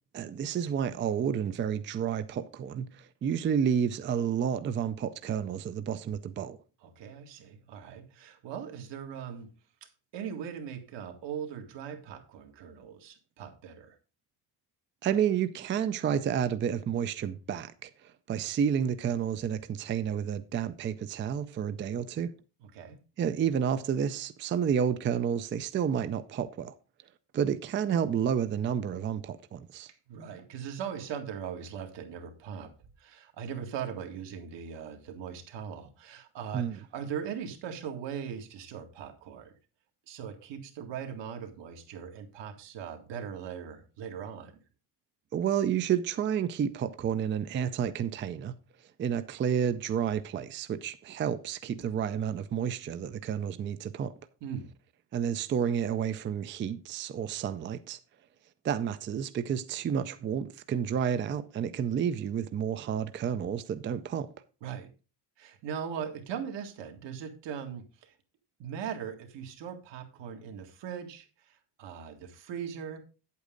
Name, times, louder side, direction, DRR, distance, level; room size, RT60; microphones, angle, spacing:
voice 1, 0.1-6.6 15.0-22.3 23.2-26.8 27.3-29.9 36.5-36.8 45.3-48.6 49.0-54.1 55.1-58.0 58.6-64.3, right 8 dB, 30° right, 0.4 m, -30 dB
voice 2, 6.8-9.5 9.8-14.0 22.6-23.0 30.1-32.7 33.0-39.5 40.1-44.5 54.4-54.7 64.6-64.9 65.4-68.1 68.6-73.0, right 8 dB, 80° right, 2.1 m, -40 dB
9.0 x 8.3 x 3.8 m
cardioid pair, 175°, 42 cm